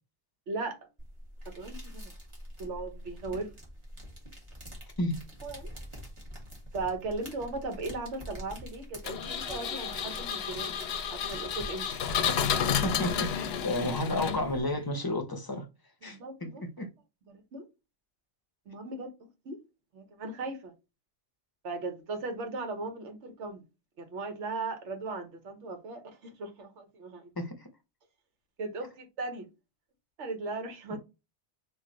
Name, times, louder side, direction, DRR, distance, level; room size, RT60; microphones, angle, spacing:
voice 1, 0.5-0.8 1.6-2.1 2.6-3.5 5.4-5.7 6.7-12.1 16.0-16.6 17.3-17.6 18.7-19.1 19.4-19.6 19.9-20.7 21.6-23.6 24.0-27.3 28.6-29.5 30.2-31.0, right 3 dB, 80° right, 1.2 m, -37 dB
sound 1, 1.0-14.6, equal, 25° right, 1.3 m, -46 dB
Engine, 9.0-14.7, left 8 dB, 65° left, 0.7 m, -31 dB
voice 2, 12.8-15.7 16.0-16.9 27.4-27.7 30.9-31.0, left 1 dB, 25° left, 0.5 m, -32 dB
3.1 x 2.5 x 3.7 m
omnidirectional pair, 1.2 m